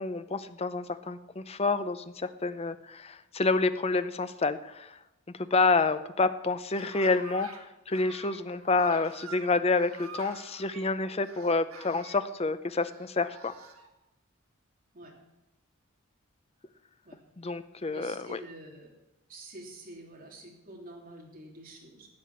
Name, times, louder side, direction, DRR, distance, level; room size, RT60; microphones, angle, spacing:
voice 1, 0.0-5.0 5.4-13.5 17.4-18.4, left 3 dB, 30° left, 12 dB, 0.6 m, -28 dB
sound 1, 6.5-7.6 7.9-10.9 11.2-12.2 12.8-13.9, right 4 dB, 80° right, 1.7 m, -47 dB
voice 2, 17.9-18.9 19.3-22.1, right 1 dB, 40° right, -2 dB, 3.3 m, -47 dB
13.0 x 8.7 x 7.3 m, 0.97 s
head